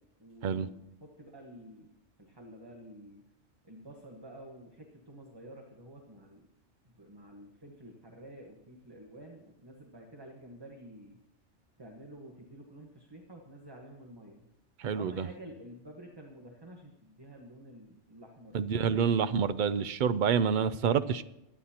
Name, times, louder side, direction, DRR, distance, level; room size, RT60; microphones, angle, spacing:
voice 1, 0.2-0.7 1.0-1.9 2.2-3.2 3.6-6.4 6.8-11.2 11.8-14.5 14.9-19.2, right 1 dB, 20° right, 1 dB, 1.2 m, -50 dB
voice 2, 14.8-15.3 18.5-21.2, right 7 dB, 55° right, 14 dB, 0.6 m, -28 dB
22.0 x 10.0 x 2.9 m, 0.88 s
omnidirectional pair, 1.2 m